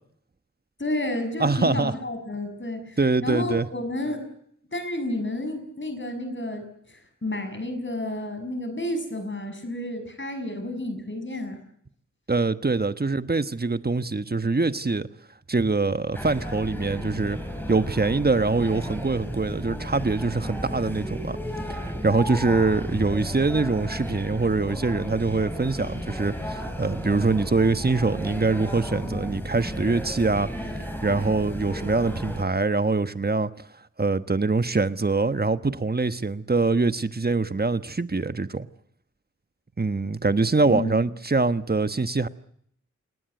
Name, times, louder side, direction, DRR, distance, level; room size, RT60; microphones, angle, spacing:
voice 1, 0.8-4.2 4.7-11.6 40.7-41.0, left 1 dB, 40° left, 6.5 m, -31 dB
voice 2, 1.4-1.9 3.0-3.7 12.3-15.1 15.5-17.4 17.7-21.4 21.7-30.5 31.0-33.5 34.0-38.7 39.8-42.3, right 3 dB, 30° right, 1.3 m, -24 dB
sound 1, 16.1-32.4, equal, 5° left, 6.1 m, -33 dB
29.0 x 18.5 x 9.3 m
wide cardioid pair, 85°, 30 cm